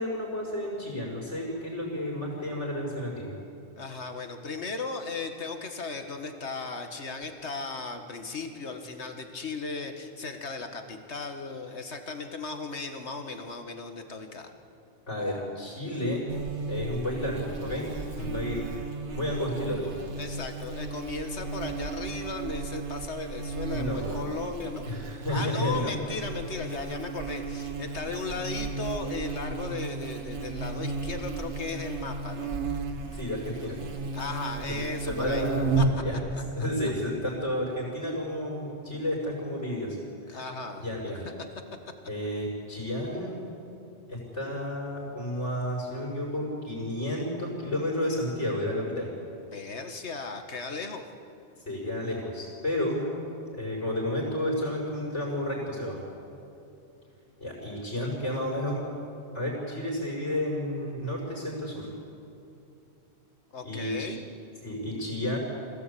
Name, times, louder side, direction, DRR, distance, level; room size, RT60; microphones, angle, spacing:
voice 1, 0.0-3.3 15.1-16.2 16.7-17.9 18.1-18.6 19.1-19.9 23.7-24.2 24.9-25.9 32.9-33.8 34.6-34.7 35.0-35.6 36.0-36.2 36.6-40.0 40.3-40.4 40.8-41.2 42.1-43.4 44.1-49.1 51.7-53.0 53.5-56.1 57.4-58.8 59.3-61.9 63.6-64.1 64.6-65.4, left 1 dB, 90° left, -4 dB, 5.7 m, -31 dB
voice 2, 3.8-14.5 20.2-24.9 25.3-32.5 34.1-35.5 35.8-36.4 40.3-40.9 41.2-41.4 49.5-51.0 63.5-64.2, left 4 dB, 75° left, 6 dB, 2.0 m, -36 dB
Buzz, 16.3-36.1, right 4 dB, 80° right, 1.8 m, -34 dB
25.5 x 16.5 x 8.5 m, 2.8 s
omnidirectional pair, 1.2 m